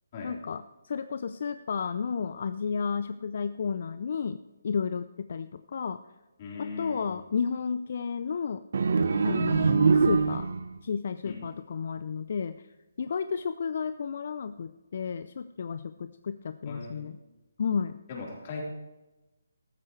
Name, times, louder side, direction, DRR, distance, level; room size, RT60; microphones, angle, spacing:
voice 1, 0.2-6.0 6.6-8.6 9.2-10.5 10.8-12.6 13.0-17.1 17.6-18.0, left 6 dB, 50° left, 13 dB, 0.5 m, -32 dB
voice 2, 6.4-7.1 11.2-11.4 16.7-17.1 18.1-18.6, left 4 dB, 35° left, -2 dB, 4.0 m, -39 dB
sound 1, 8.7-10.8, right 5 dB, 55° right, 0.8 m, -23 dB
14.5 x 13.0 x 3.3 m, 1.1 s
figure-of-eight pair, 145°, 0 cm